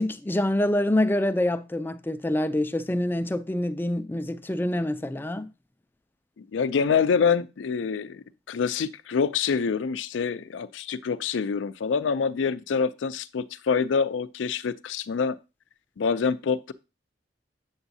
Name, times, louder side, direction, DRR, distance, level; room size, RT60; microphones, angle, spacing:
voice 1, 0.0-5.5, left 1 dB, 10° left, 0.4 m, -26 dB
voice 2, 6.4-15.4 16.0-16.7, left 6 dB, 85° left, 0.4 m, -26 dB
7.9 x 7.1 x 2.7 m
head